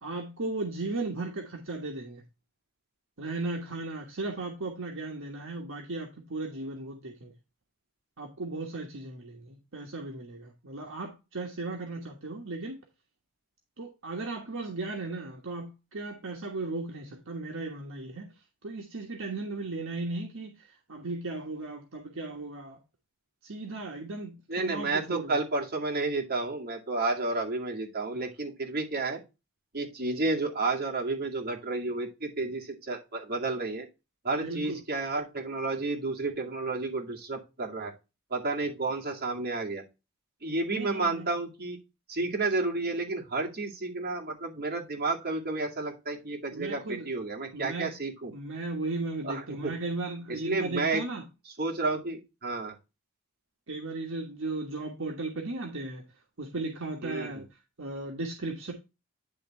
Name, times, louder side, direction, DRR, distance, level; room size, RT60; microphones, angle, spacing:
voice 1, 0.0-2.2 3.2-7.3 8.2-12.8 13.8-18.3 18.6-22.8 23.4-25.4 34.3-34.8 40.7-41.3 46.5-47.1 47.5-47.9 48.3-51.2 53.7-56.0 56.4-57.4 57.8-58.7, right 2 dB, 60° right, 1.3 m, -36 dB
voice 2, 24.5-29.2 29.7-33.9 34.2-37.9 38.3-39.8 40.4-41.8 42.1-48.3 49.2-49.7 50.3-51.0 51.5-52.8 57.0-57.4, right 3 dB, 45° right, 2.2 m, -31 dB
10.5 x 3.5 x 4.3 m
head